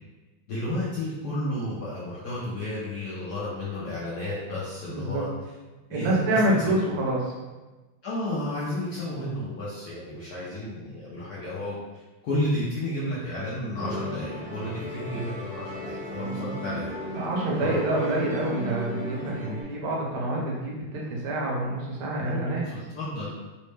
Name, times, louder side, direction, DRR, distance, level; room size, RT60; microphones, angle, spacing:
voice 1, 0.5-5.3 5.9-6.7 8.0-16.9 17.6-17.9 22.2-23.3, left 1 dB, 70° left, -7 dB, 0.9 m, -32 dB
voice 2, 4.9-5.2 5.9-7.3 17.1-22.7, right 1 dB, 80° right, -3 dB, 1.7 m, -27 dB
Musical instrument, 13.8-19.6, left 1 dB, 5° left, 0.6 m, -35 dB
4.1 x 2.1 x 3.2 m, 1.2 s
omnidirectional pair, 2.4 m